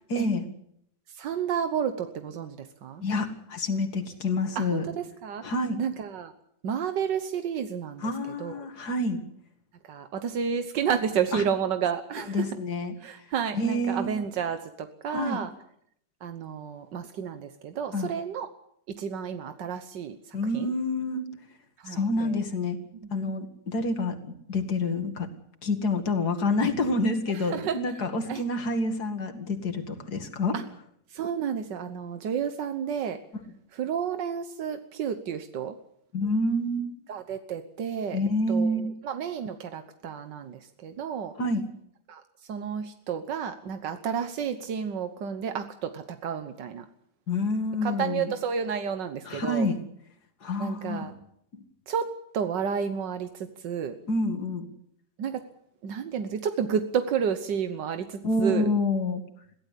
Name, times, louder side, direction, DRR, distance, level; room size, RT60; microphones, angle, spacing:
voice 1, 0.1-0.5 3.0-4.8 5.4-5.8 8.0-9.2 11.3-11.4 12.2-12.9 13.5-14.1 15.1-15.4 17.9-18.1 20.3-21.2 21.9-22.8 23.1-25.3 25.6-30.5 36.1-37.0 38.1-38.9 41.4-41.6 47.3-48.3 49.3-49.8 50.4-51.1 51.5-51.6 54.1-54.7 58.2-59.2, left 2 dB, 65° left, 7 dB, 2.7 m, -28 dB
voice 2, 1.2-3.0 4.6-5.4 5.8-6.3 6.6-8.1 8.4-8.7 9.9-12.5 13.0-15.5 16.2-18.5 19.0-20.7 21.8-22.4 23.0-23.4 27.5-27.8 28.3-28.4 30.5-30.6 31.1-33.2 33.7-35.8 37.1-38.2 38.5-41.3 42.1-42.2 42.5-46.9 47.8-49.7 50.6-51.1 51.9-54.0 55.2-55.4 55.8-58.7, right 7 dB, 90° right, 8 dB, 1.8 m, -31 dB
22.5 x 16.0 x 8.4 m, 0.72 s
omnidirectional pair, 1.8 m